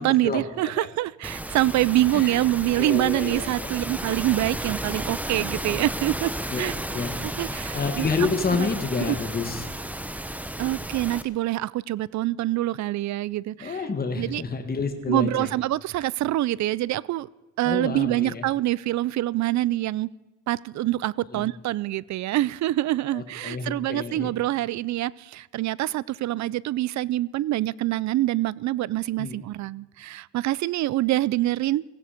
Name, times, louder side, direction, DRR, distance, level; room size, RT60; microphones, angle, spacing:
voice 1, 0.0-6.3 6.6-6.7 7.2-8.1 8.6-8.7 9.1-9.2 10.6-13.8 14.2-14.4 15.1-17.3 17.6-20.1 20.5-31.8, right 15 dB, 65° right, 23 dB, 0.5 m, -25 dB
sound 1, 1.2-11.2, right 1 dB, 5° right, 0.9 m, -33 dB
voice 2, 2.8-3.7 6.5-7.2 7.7-9.7 13.6-15.5 17.6-18.4 21.3-21.5 23.1-24.3 29.2-29.4, left 4 dB, 30° left, 5 dB, 1.8 m, -29 dB
16.5 x 16.0 x 5.1 m, 1.1 s
cardioid pair, 90°, 30 cm